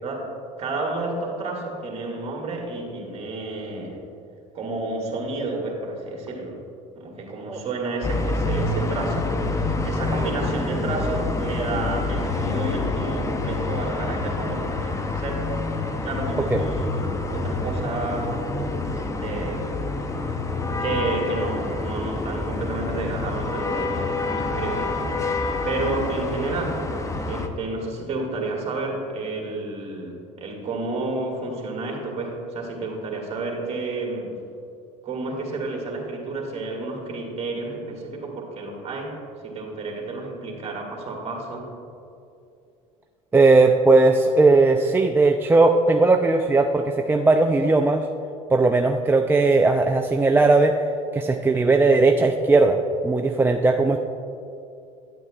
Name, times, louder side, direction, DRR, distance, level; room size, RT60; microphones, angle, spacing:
voice 1, 0.6-4.0 4.5-6.6 7.0-9.6 9.8-15.5 16.0-18.4 18.9-19.7 20.8-24.9 25.6-26.8 27.3-34.4 35.0-39.2 39.4-41.7, right 3 dB, 40° right, -1 dB, 2.0 m, -30 dB
sound 1, 8.0-27.5, left 3 dB, 20° left, 0.7 m, -27 dB
voice 2, 43.3-48.0 48.5-50.8 51.1-54.0, right 3 dB, 15° right, 4 dB, 0.4 m, -18 dB
9.5 x 9.1 x 2.4 m, 2.6 s
hypercardioid pair, 75°, 17 cm